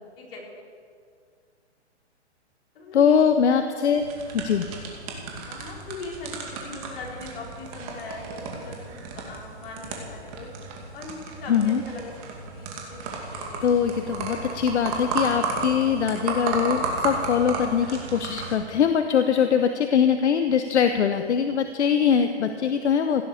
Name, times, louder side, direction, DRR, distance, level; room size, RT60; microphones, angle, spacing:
voice 1, 0.2-0.6 2.7-3.2 5.4-10.5 10.9-13.7, left 3 dB, 55° left, -3 dB, 4.8 m, -40 dB
voice 2, 2.9-4.0 4.3-4.6 11.5-11.8 13.6-23.2, left 7 dB, 80° left, 7 dB, 1.0 m, -22 dB
sound 1, 3.9-18.5, right 3 dB, 30° right, 2.4 m, -33 dB
16.0 x 10.0 x 7.0 m, 2.1 s
hypercardioid pair, 155°, 34 cm